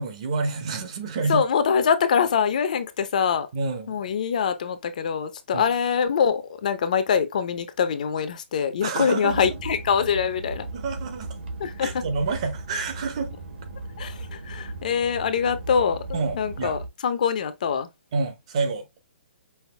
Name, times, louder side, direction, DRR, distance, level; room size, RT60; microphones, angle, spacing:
voice 1, 0.0-1.4 3.5-4.0 5.5-5.7 8.8-9.5 10.7-11.4 11.8-13.3 16.1-16.8 18.1-19.0, right 4 dB, 30° right, 0.8 m, -28 dB
voice 2, 1.3-3.5 3.9-10.7 11.6-12.0 14.0-17.9, left 7 dB, 40° left, 0.7 m, -24 dB
sound 1, 9.3-16.9, right 2 dB, 70° right, 1.8 m, -37 dB
5.6 x 2.6 x 3.2 m
hypercardioid pair, 175°, 6 cm